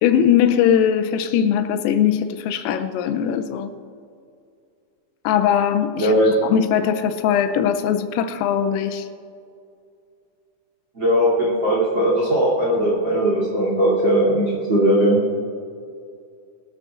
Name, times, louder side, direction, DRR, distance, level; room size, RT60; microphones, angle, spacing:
voice 1, 0.0-3.7 5.2-6.1 6.4-9.1, left 9 dB, 85° left, 3.2 m, -20 dB
voice 2, 6.0-6.4 10.9-15.2, equal, 30° right, 2.5 m, -19 dB
23.0 x 13.0 x 2.5 m
omnidirectional pair, 6.0 m